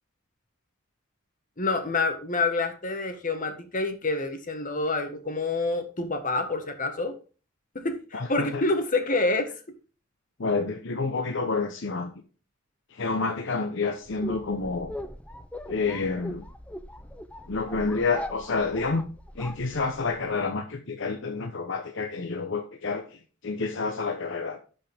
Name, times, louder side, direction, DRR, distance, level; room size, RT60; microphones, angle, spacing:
voice 1, 1.6-7.1 7.7-9.8, left 3 dB, 40° left, 6 dB, 1.6 m, -27 dB
voice 2, 8.1-8.6 10.4-12.1 12.9-14.9 15.7-16.4 17.5-19.1 19.4-24.6, left 4 dB, 65° left, 5 dB, 0.9 m, -29 dB
sound 1, 14.0-20.3, left 1 dB, 5° left, 0.6 m, -40 dB
11.5 x 5.4 x 3.5 m, 0.36 s
head